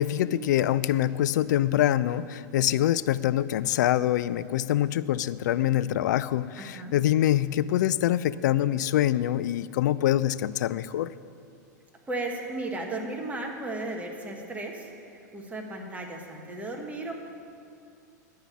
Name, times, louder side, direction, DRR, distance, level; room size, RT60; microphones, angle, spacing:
voice 1, 0.0-11.1, left 12 dB, 75° left, 16 dB, 0.4 m, -25 dB
voice 2, 6.6-7.0 12.1-17.1, right 2 dB, 15° right, 1 dB, 1.5 m, -35 dB
10.5 x 5.5 x 8.4 m, 2.5 s
hypercardioid pair, 115°, 10 cm